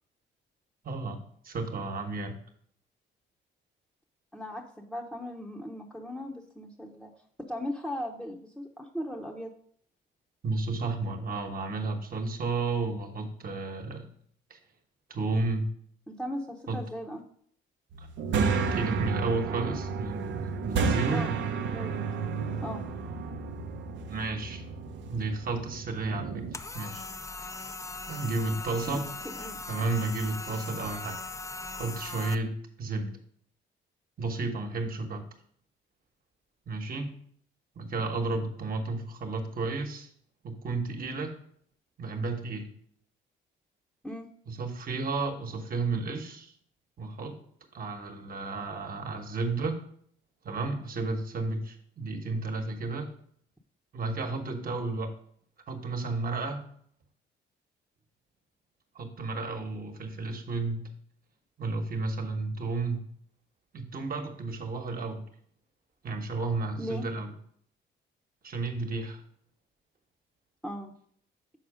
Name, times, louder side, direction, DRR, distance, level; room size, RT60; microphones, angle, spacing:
voice 1, 0.8-1.2 1.4-2.3 10.4-14.1 14.5-14.6 15.1-15.7 16.7-16.8 18.0-18.1 18.3-21.3 24.1-24.6 25.1-27.0 28.1-29.0 29.7-31.2 31.7-32.5 32.8-33.1 34.2-35.2 36.7-37.2 37.7-40.1 40.4-41.3 42.0-42.7 44.5-46.5 47.0-47.4 47.7-49.8 50.4-53.1 53.9-55.1 55.7-56.6 58.9-60.9 61.6-63.0 63.7-65.2 66.0-67.3 68.4-69.2, right 3 dB, 45° right, 4 dB, 1.3 m, -32 dB
voice 2, 4.3-7.1 7.4-9.5 16.1-17.2 21.1-21.3 21.7-22.0 22.6-22.9 28.9-29.1 29.3-29.6 44.0-44.3 66.8-67.0 70.6-70.9, equal, ahead, -1 dB, 0.8 m, -38 dB
sound 1, 17.9-26.6, right 5 dB, 70° right, 0.7 m, -31 dB
sound 2, 26.5-32.3, left 3 dB, 15° left, 0.4 m, -39 dB
6.3 x 4.5 x 5.0 m, 0.62 s
cardioid pair, 90°, 20 cm